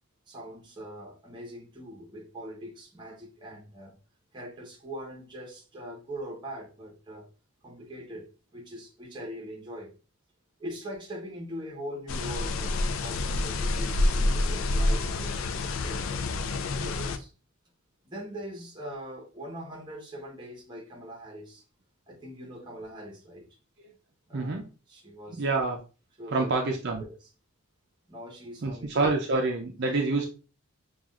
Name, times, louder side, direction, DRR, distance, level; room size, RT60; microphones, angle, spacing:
voice 1, 0.3-4.0 4.3-7.3 7.6-9.9 10.6-17.3 18.0-21.6 22.1-23.5 24.3-24.6 24.9-25.4 26.2-26.5 27.2-27.3 28.1-29.1 29.9-30.0, equal, 20° right, 1.0 m, -42 dB
sound 1, 12.1-17.2, left 2 dB, 65° left, 0.4 m, -28 dB
voice 2, 24.3-24.7 25.3-25.8 26.3-27.1 28.6-30.3, right 3 dB, 50° right, 0.5 m, -27 dB
5.7 x 2.4 x 2.4 m
head